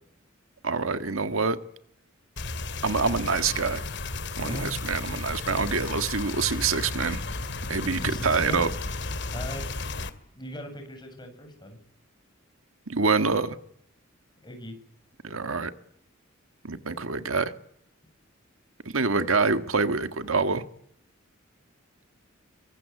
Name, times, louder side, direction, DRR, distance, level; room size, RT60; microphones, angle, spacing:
voice 1, 0.6-1.6 2.8-3.8 4.4-7.2 7.7-8.7 12.9-13.6 15.2-15.7 16.6-17.5 18.9-20.6, right 4 dB, 85° right, 1.7 m, -26 dB
sound 1, 2.4-10.1, left 3 dB, 60° left, 2.3 m, -33 dB
voice 2, 8.0-8.6 9.3-9.7 10.3-11.8 14.4-14.8, left 1 dB, 20° left, 7.4 m, -38 dB
24.5 x 24.0 x 9.5 m
head